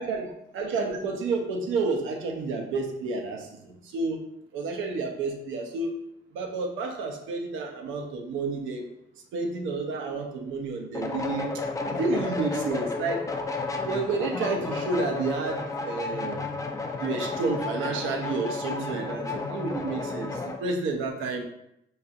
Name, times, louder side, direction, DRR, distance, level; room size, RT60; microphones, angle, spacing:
voice 1, 0.0-4.3 4.5-5.9 6.3-8.8 9.3-11.5 11.9-13.2 13.8-16.5 17.0-21.4, right 3 dB, 85° right, 3 dB, 0.6 m, -30 dB
sound 1, 10.9-20.6, left 3 dB, 15° left, 0.4 m, -32 dB
4.2 x 2.3 x 2.5 m, 0.80 s
cardioid pair, 90°, 20 cm